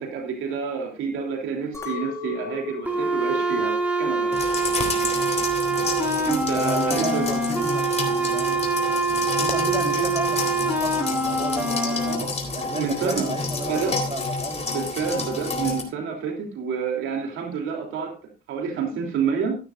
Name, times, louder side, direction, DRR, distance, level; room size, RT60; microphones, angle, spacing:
voice 1, 0.0-4.4 6.2-7.3 12.1-12.3 12.7-13.3 13.7-14.0 14.7-18.2 18.5-19.5, right 6 dB, 90° right, 3 dB, 2.9 m, -28 dB
Chink clink, 1.7-6.1 6.5-7.1, left 7 dB, 15° left, 4.4 m, -40 dB
sound 1, 2.9-12.1, right 3 dB, 5° right, 4.4 m, -25 dB
sound 2, 4.3-15.8, left 3 dB, 35° left, 3.8 m, -29 dB
voice 2, 5.8-6.2 6.5-7.9 8.1-8.6 9.4-14.7 15.0-15.6, right 3 dB, 30° right, 2 dB, 4.0 m, -34 dB
14.0 x 12.5 x 2.4 m, 0.31 s
cardioid pair, 90°, 20 cm